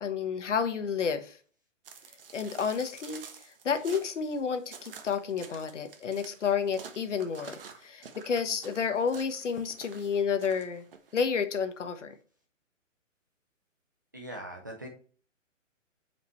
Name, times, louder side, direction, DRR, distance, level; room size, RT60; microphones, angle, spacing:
voice 1, 0.0-1.4 2.3-3.2 3.6-10.9 11.1-12.2, left 6 dB, 65° left, 8 dB, 1.3 m, -30 dB
sound 1, 1.8-11.1, right 6 dB, 45° right, 1.2 m, -49 dB
voice 2, 14.1-14.9, right 1 dB, 15° right, 0 dB, 0.5 m, -41 dB
7.9 x 5.2 x 3.1 m, 0.41 s
hypercardioid pair, 170°, 39 cm